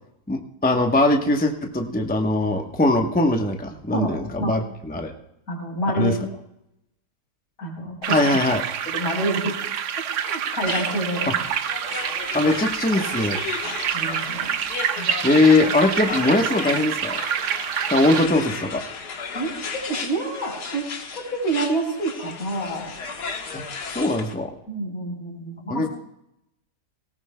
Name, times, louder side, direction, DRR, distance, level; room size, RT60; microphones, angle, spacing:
voice 1, 0.3-5.1 6.0-6.2 8.1-8.6 11.3-11.4 12.3-13.4 15.2-17.2 17.9-18.8 23.5-23.6 23.9-24.5 25.7-25.9, left 2 dB, 10° left, 3 dB, 0.7 m, -21 dB
voice 2, 3.9-4.5 5.5-6.2 7.6-8.2 8.9-9.5 10.2-11.4 13.6-14.5 15.0-15.1 19.3-20.9 21.1-23.0 24.7-25.9, right 1 dB, 60° left, 0 dB, 4.3 m, -28 dB
sound 1, 8.0-18.3, right 8 dB, 60° right, 0.9 m, -27 dB
sound 2, 10.7-24.3, left 5 dB, 85° left, 1.8 m, -34 dB
18.0 x 18.0 x 2.2 m, 0.83 s
omnidirectional pair, 1.7 m